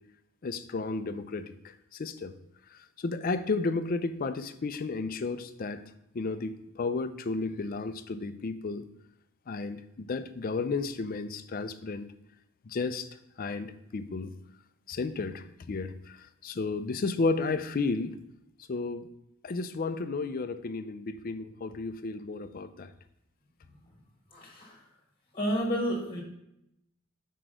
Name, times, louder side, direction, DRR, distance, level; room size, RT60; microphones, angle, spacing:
voice 1, 0.4-2.3 2.7-5.8 6.1-8.8 9.5-12.1 12.6-13.1 13.4-14.3 14.9-18.2 18.7-19.1 19.4-22.9, left 3 dB, 40° left, 11 dB, 0.4 m, -33 dB
voice 2, 24.3-24.8 25.3-26.2, equal, 25° left, -1 dB, 1.3 m, -30 dB
6.0 x 4.6 x 4.9 m, 0.83 s
head